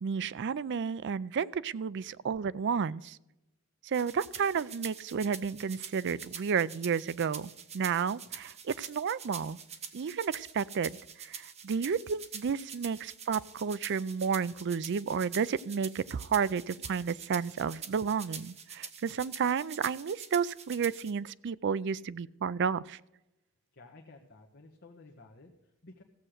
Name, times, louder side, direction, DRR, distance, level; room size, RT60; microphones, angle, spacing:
voice 1, 0.0-3.2 3.8-9.6 9.9-23.0, right 6 dB, 55° right, 18 dB, 0.4 m, -32 dB
sound 1, 3.9-21.1, right 7 dB, 30° right, 1.0 m, -45 dB
voice 2, 23.7-26.0, left 2 dB, 50° left, 0 dB, 1.3 m, -54 dB
15.5 x 7.6 x 6.5 m, 0.91 s
head